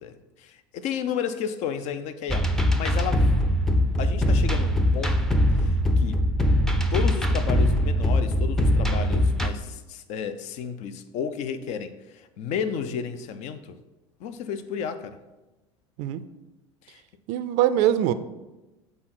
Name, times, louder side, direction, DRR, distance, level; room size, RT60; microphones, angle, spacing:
voice 1, 0.0-3.3 4.0-5.3 5.6-6.2 6.9-13.8 14.2-15.2 16.8-17.0, left 7 dB, 50° left, 0.6 m, -32 dB
sound 1, 2.3-9.5, left 1 dB, 5° left, 0.6 m, -22 dB
voice 2, 17.3-18.1, right 11 dB, 55° right, 0.4 m, -22 dB
7.6 x 3.9 x 4.4 m
hypercardioid pair, 75°, 15 cm